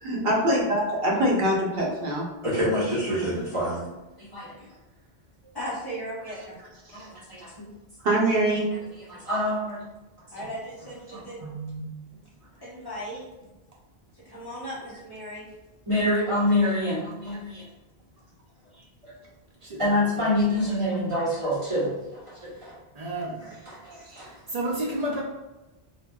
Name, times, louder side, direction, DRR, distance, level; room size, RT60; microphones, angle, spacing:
voice 1, 0.0-2.3 8.0-8.6 24.1-24.2, right 1 dB, 70° right, -2 dB, 0.9 m, -23 dB
voice 2, 2.4-3.9 4.2-4.5 6.9-7.7 9.0-9.8 10.4-10.5 11.1-11.2 15.9-17.6 19.0-19.1 19.8-22.8 23.1-24.3, left 1 dB, 30° right, -9 dB, 1.1 m, -27 dB
voice 3, 5.5-6.6 10.3-11.4 12.6-13.3 14.1-15.5 18.7-18.9, equal, 25° left, -8 dB, 0.9 m, -37 dB
voice 4, 11.4-11.9 19.6-19.8 23.0-23.5 24.5-25.2, right 1 dB, 50° right, -3 dB, 0.5 m, -31 dB
3.4 x 2.2 x 2.3 m, 1.1 s
omnidirectional pair, 1.1 m